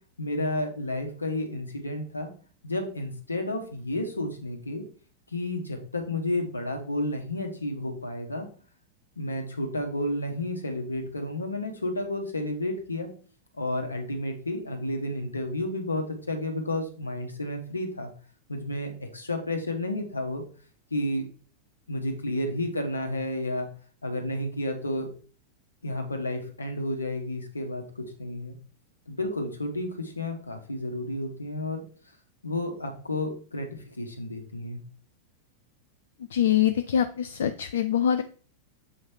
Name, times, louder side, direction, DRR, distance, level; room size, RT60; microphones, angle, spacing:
voice 1, 0.2-2.3 2.6-4.8 5.3-8.5 9.2-13.1 13.6-18.1 18.5-20.4 20.9-21.3 21.9-23.7 24.0-25.1 25.8-28.5 29.1-31.8 32.4-34.8, left 1 dB, 80° left, 4 dB, 1.1 m, -31 dB
voice 2, 36.3-38.2, left 9 dB, 60° left, 10 dB, 0.3 m, -24 dB
6.9 x 3.2 x 4.5 m, 0.41 s
figure-of-eight pair, 90°, 0 cm